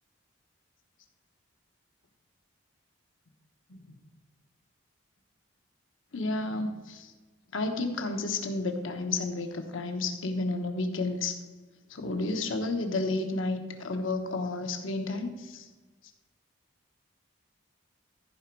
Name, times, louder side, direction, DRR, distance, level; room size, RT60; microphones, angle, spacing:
voice 1, 6.1-7.1 7.5-11.4 11.9-15.7, left 2 dB, 80° left, 5 dB, 1.1 m, -31 dB
14.5 x 5.1 x 4.6 m, 1.3 s
head